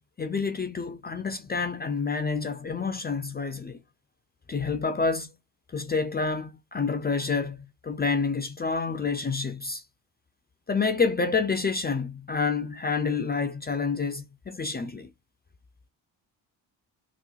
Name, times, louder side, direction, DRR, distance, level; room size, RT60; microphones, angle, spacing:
voice 1, 0.2-3.8 4.5-5.3 5.7-7.6 7.8-9.8 10.7-15.1, left 4 dB, 20° left, 0.4 m, -28 dB
3.7 x 2.1 x 3.1 m
hypercardioid pair, 45°, 48 cm